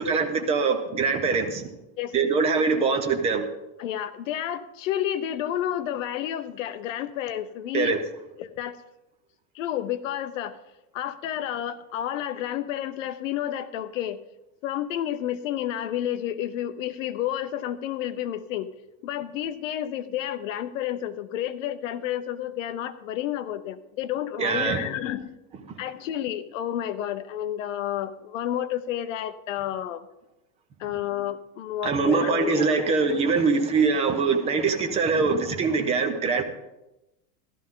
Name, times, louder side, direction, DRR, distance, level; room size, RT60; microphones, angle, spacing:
voice 1, 0.0-1.7 2.1-3.5 7.7-8.0 24.4-24.8 31.8-36.4, right 4 dB, 15° right, 6 dB, 0.6 m, -23 dB
voice 2, 3.8-8.0 8.4-8.8 9.5-10.6 10.9-14.2 14.6-18.7 19.0-25.3 25.8-30.1 30.8-33.2, left 11 dB, 55° left, 12 dB, 0.9 m, -30 dB
14.5 x 12.0 x 3.8 m, 0.95 s
supercardioid pair, 170°, 45 cm